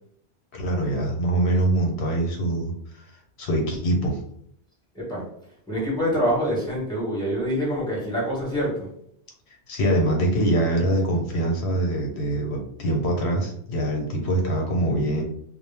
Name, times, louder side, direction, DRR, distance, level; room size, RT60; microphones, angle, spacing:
voice 1, 0.5-3.0 3.4-4.2 9.7-15.2, right 1 dB, 80° left, 1 dB, 1.0 m, -24 dB
voice 2, 5.7-8.9, equal, 5° left, -7 dB, 1.0 m, -25 dB
2.2 x 2.0 x 3.2 m, 0.70 s
omnidirectional pair, 1.1 m